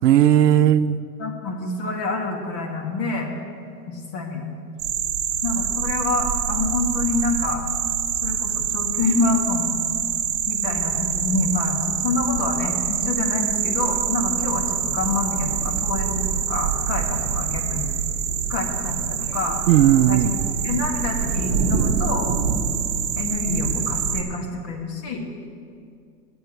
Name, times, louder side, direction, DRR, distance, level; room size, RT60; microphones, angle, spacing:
voice 1, 0.0-1.0 19.7-20.3, right 11 dB, 75° right, 13 dB, 0.6 m, -16 dB
voice 2, 1.2-3.3 3.9-4.4 5.4-7.6 8.2-9.8 10.5-17.9 18.5-19.6 20.1-20.3 20.6-22.3 23.1-25.3, left 3 dB, 30° left, 2 dB, 1.6 m, -27 dB
sound 1, 4.8-24.2, right 7 dB, 40° right, 1.4 m, -25 dB
9.3 x 7.0 x 7.9 m, 2.3 s
hypercardioid pair, 130°, 49 cm